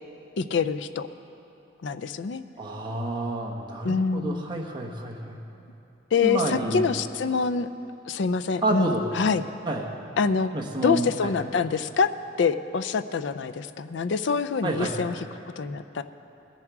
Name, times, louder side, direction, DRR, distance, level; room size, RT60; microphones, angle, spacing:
voice 1, 0.4-1.1 1.8-2.4 3.8-4.5 6.1-7.7 8.1-9.4 10.2-10.5 10.8-12.1 12.4-15.1 15.6-16.0, left 5 dB, 70° left, 11 dB, 0.4 m, -25 dB
voice 2, 2.6-5.4 6.2-6.9 8.6-9.1 9.7-9.9 10.5-11.3 14.6-15.0, right 1 dB, 25° right, -1 dB, 1.0 m, -29 dB
20.0 x 7.3 x 4.7 m, 2.9 s
head